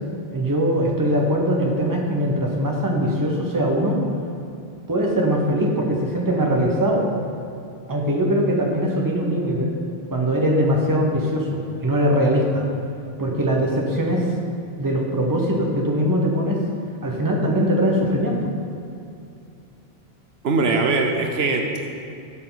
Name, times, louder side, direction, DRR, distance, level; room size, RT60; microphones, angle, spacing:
voice 1, 0.3-4.0 4.9-7.1 7.9-9.7 10.1-12.6 13.2-14.3 14.8-16.6 17.0-18.4, equal, 20° right, 0 dB, 1.1 m, -21 dB
voice 2, 20.4-21.9, right 3 dB, 75° right, 3 dB, 1.1 m, -21 dB
12.5 x 6.6 x 4.0 m, 2.6 s
omnidirectional pair, 1.1 m